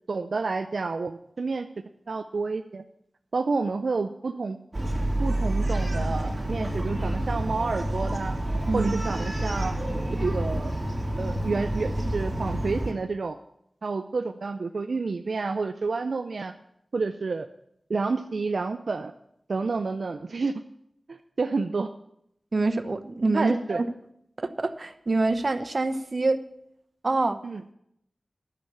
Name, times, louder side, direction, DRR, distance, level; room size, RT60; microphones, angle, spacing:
voice 1, 0.1-1.7 2.1-2.8 3.3-4.6 5.2-8.4 8.7-9.7 10.2-10.7 11.2-13.4 13.8-16.5 16.9-17.5 17.9-19.1 19.5-20.5 21.1-21.9 23.3-23.8 27.4-27.6, right 4 dB, 80° right, 8 dB, 0.5 m, -29 dB
Bark, 4.7-12.9, right 1 dB, 30° right, 3.0 m, -28 dB
voice 2, 22.5-23.8 24.4-26.4 27.0-27.4, right 3 dB, 55° right, 10 dB, 0.9 m, -26 dB
11.0 x 6.8 x 8.5 m, 0.75 s
wide cardioid pair, 50°, 0 cm